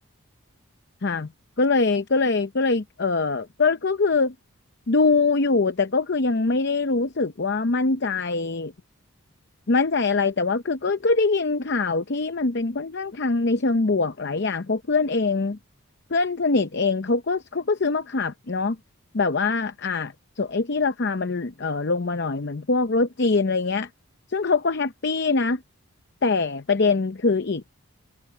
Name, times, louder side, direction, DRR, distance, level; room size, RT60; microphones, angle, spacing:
voice 1, 1.6-4.3 4.9-8.7 9.7-15.6 16.1-18.8 19.1-23.9 24.3-25.6 26.2-27.7, left 3 dB, 50° left, 0.7 m, -23 dB
head